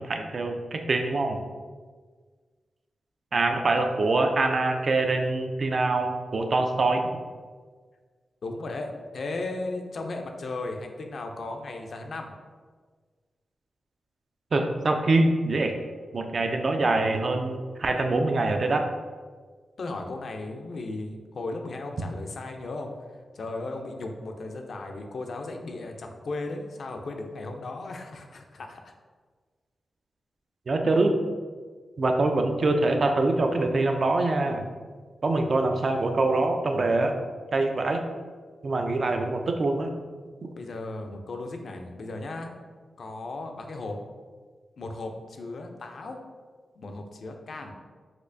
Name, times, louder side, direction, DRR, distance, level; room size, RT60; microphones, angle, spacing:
voice 1, 0.0-1.4 3.3-7.0 14.5-15.8 16.1-18.9 30.7-31.2 32.0-34.6 35.2-37.2 37.5-38.0 38.6-39.9, right 2 dB, 55° right, 5 dB, 0.4 m, -24 dB
voice 2, 8.4-12.3 19.8-22.9 23.3-28.9 40.5-42.5 43.0-44.0 44.8-46.2 46.8-47.7, left 2 dB, 70° left, 4 dB, 0.4 m, -36 dB
4.2 x 2.4 x 2.6 m, 1.5 s
cardioid pair, 65°, 0 cm